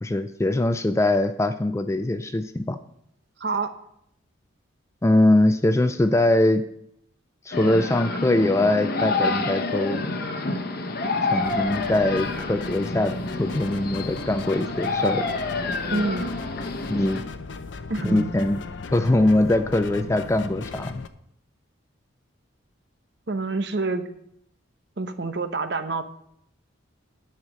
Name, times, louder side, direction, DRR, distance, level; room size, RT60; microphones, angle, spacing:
voice 1, 0.0-2.8 5.0-6.6 7.5-10.0 11.3-15.2 16.9-17.2 18.0-18.6 18.9-21.0, left 1 dB, 15° left, 10 dB, 0.3 m, -22 dB
voice 2, 3.4-3.7 15.9-16.3 17.9-18.3 23.3-24.1 25.0-26.0, right 3 dB, 55° right, 9 dB, 0.8 m, -27 dB
sound 1, 7.5-17.2, left 3 dB, 50° left, 0.9 m, -28 dB
sound 2, 11.4-21.1, left 4 dB, 65° left, 0.6 m, -37 dB
10.5 x 5.7 x 6.2 m, 0.73 s
head